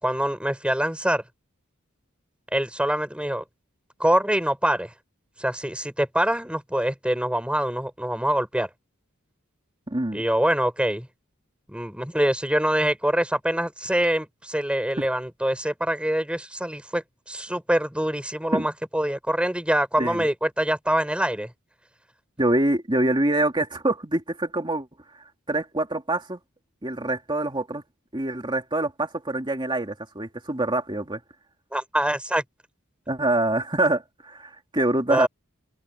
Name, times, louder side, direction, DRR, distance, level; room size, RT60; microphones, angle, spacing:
voice 1, 0.0-1.2 2.5-3.4 4.0-4.9 5.4-8.7 10.1-11.1 11.7-21.5 31.7-32.4 35.1-35.3, right 1 dB, 5° right, 4.9 m, -24 dB
voice 2, 9.9-10.2 18.5-18.6 20.0-20.3 22.4-24.9 25.2-26.4 26.8-27.8 28.1-31.2 33.1-35.3, right 2 dB, 20° right, 2.5 m, -25 dB
open air
head